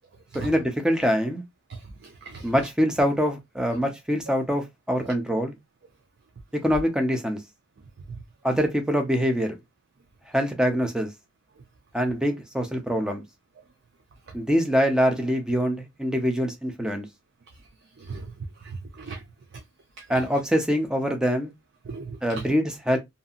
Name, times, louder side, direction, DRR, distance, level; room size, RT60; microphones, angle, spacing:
voice 1, 0.3-1.4 2.4-5.6 6.6-7.4 8.4-9.6 10.3-11.1 11.9-13.2 14.3-17.1 20.1-21.5 22.2-23.0, equal, 5° right, 0.6 m, -24 dB
voice 2, 1.7-2.5 18.0-18.3 18.6-19.2 20.0-20.1 21.9-22.4, right 4 dB, 55° right, 0.5 m, -38 dB
2.8 x 2.6 x 2.4 m
head